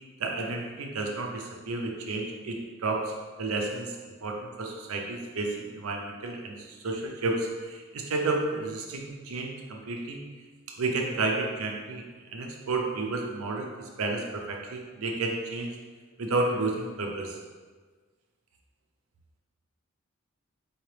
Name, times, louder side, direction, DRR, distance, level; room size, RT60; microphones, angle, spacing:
voice 1, 0.2-3.1 3.4-3.9 4.2-10.2 10.7-12.0 12.3-13.7 14.0-15.7 16.2-17.4, right 3 dB, 85° right, 1 dB, 0.6 m, -31 dB
4.2 x 2.9 x 3.2 m, 1.4 s
head